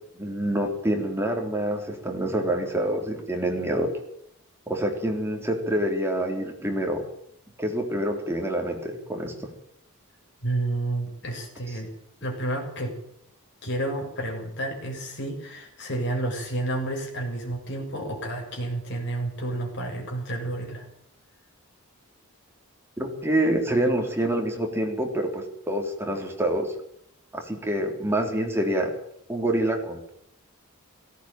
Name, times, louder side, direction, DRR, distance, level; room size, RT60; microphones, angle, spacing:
voice 1, 0.2-3.9 4.7-7.0 7.6-9.5 23.0-26.7 27.3-28.9 29.3-30.1, right 1 dB, 10° right, 2 dB, 3.5 m, -26 dB
voice 2, 10.4-11.9 12.2-12.9 13.6-20.9, right 1 dB, 55° left, 1 dB, 7.2 m, -30 dB
17.5 x 17.0 x 9.0 m, 0.71 s
head